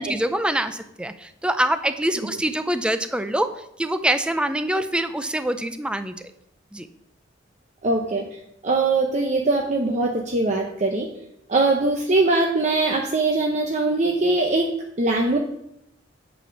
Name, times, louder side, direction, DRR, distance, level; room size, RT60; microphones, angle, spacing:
voice 1, 0.0-3.5 3.8-6.2 6.7-6.9, right 1 dB, 5° right, 10 dB, 0.4 m, -24 dB
voice 2, 7.8-8.3 8.6-11.1 11.5-15.4, right 2 dB, 40° right, 1 dB, 0.7 m, -22 dB
9.1 x 4.3 x 5.8 m, 0.79 s
head